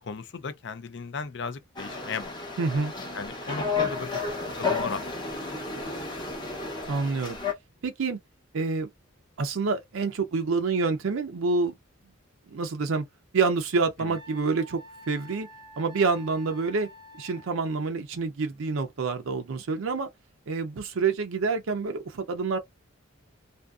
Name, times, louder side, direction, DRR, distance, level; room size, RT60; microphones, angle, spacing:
voice 1, 0.0-2.4 3.1-4.2 4.6-5.3 14.0-14.1, left 5 dB, 55° left, 0.4 m, -36 dB
sound 1, 1.8-7.5, left 4 dB, 20° left, 0.7 m, -32 dB
voice 2, 2.6-2.9 6.9-7.4 7.8-8.2 8.5-8.9 9.4-11.7 12.5-13.0 13.3-15.5 15.8-20.1 20.5-22.6, right 4 dB, 80° right, 0.5 m, -27 dB
Wind instrument woodwind instrument, 14.1-17.9, equal, 20° right, 0.7 m, -49 dB
2.6 x 2.5 x 2.3 m
head